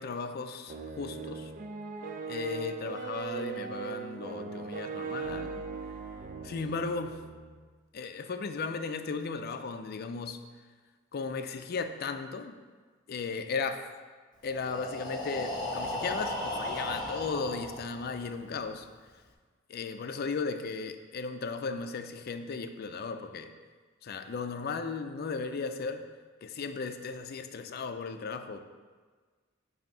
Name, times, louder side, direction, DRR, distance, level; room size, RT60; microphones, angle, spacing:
voice 1, 0.0-1.5 2.3-5.6 6.4-7.2 7.9-10.4 11.1-12.6 13.1-13.8 14.4-18.9 19.7-23.5 24.0-26.0 26.4-28.6, left 4 dB, 50° left, 8 dB, 0.4 m, -36 dB
sound 1, 0.7-7.6, right 5 dB, 40° right, 0.4 m, -39 dB
Breathing, 14.5-18.3, left 1 dB, 20° left, 0.9 m, -36 dB
7.6 x 2.7 x 5.3 m, 1.5 s
head